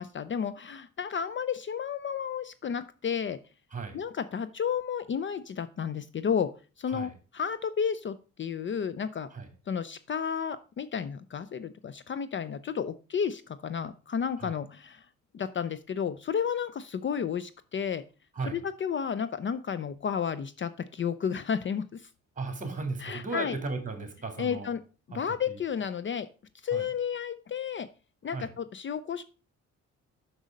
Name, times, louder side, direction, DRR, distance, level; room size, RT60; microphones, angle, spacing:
voice 1, 0.0-3.4 3.9-6.5 6.8-9.3 9.7-15.1 15.3-18.0 18.5-22.1 23.0-23.5 24.4-24.8 25.1-26.3 26.6-27.9 28.2-29.2, left 7 dB, 40° left, 14 dB, 0.6 m, -32 dB
voice 2, 22.4-24.7 25.1-25.6 26.7-26.9 28.3-28.5, right 3 dB, 25° right, 6 dB, 2.6 m, -36 dB
6.4 x 6.2 x 5.2 m, 0.34 s
cardioid pair, 90°, 30 cm